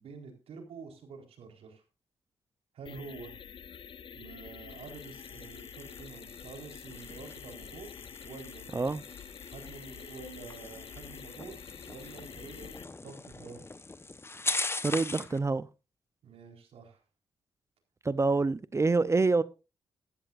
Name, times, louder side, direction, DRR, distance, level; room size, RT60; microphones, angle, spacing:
voice 1, 0.0-1.8 2.7-3.3 4.1-8.7 9.5-13.6 16.2-17.0, right 4 dB, 75° right, 4.2 m, -48 dB
sound 1, 2.8-12.8, left 7 dB, 55° left, 0.5 m, -47 dB
sound 2, 4.7-15.4, left 3 dB, 25° left, 1.0 m, -41 dB
voice 2, 14.8-15.7 18.0-19.4, right 3 dB, 30° right, 0.7 m, -26 dB
15.0 x 13.0 x 2.6 m
supercardioid pair, 55°, 10 cm